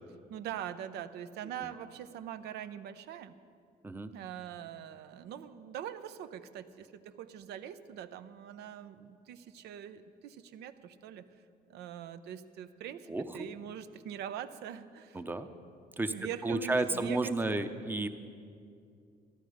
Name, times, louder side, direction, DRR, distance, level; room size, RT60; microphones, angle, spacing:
voice 1, 0.3-3.4 4.1-11.2 11.7-15.2 16.1-17.6, right 10 dB, 80° right, 11 dB, 0.6 m, -43 dB
voice 2, 15.1-15.5 16.0-16.1 16.4-18.1, right 2 dB, 10° right, 9 dB, 0.7 m, -32 dB
14.5 x 11.5 x 5.0 m, 2.4 s
cardioid pair, 110°, 17 cm